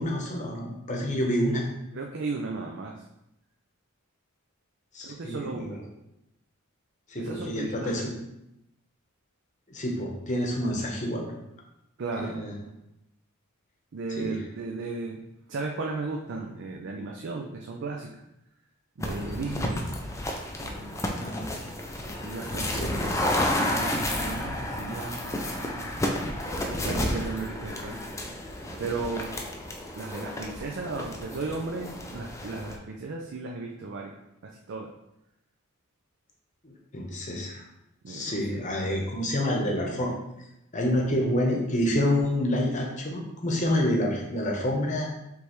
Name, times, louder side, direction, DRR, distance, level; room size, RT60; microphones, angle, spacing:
voice 1, 0.0-1.6 4.9-5.8 7.1-8.1 9.7-11.2 12.2-12.6 14.2-14.4 21.2-21.7 22.7-23.0 36.6-37.6 38.1-40.1 40.7-45.1, left 1 dB, 35° left, 0 dB, 0.9 m, -28 dB
voice 2, 1.9-2.9 5.0-5.7 7.2-8.1 12.0-12.4 13.9-15.2 15.5-18.1 19.0-19.8 20.6-21.0 22.2-23.2 23.5-26.1 26.5-28.0 28.8-29.3 29.9-34.2 34.4-34.9 38.0-39.0, right 3 dB, 55° right, 0 dB, 0.4 m, -35 dB
sound 1, 19.0-32.8, left 1 dB, 15° left, 0.4 m, -31 dB
5.2 x 3.3 x 3.1 m, 0.85 s
head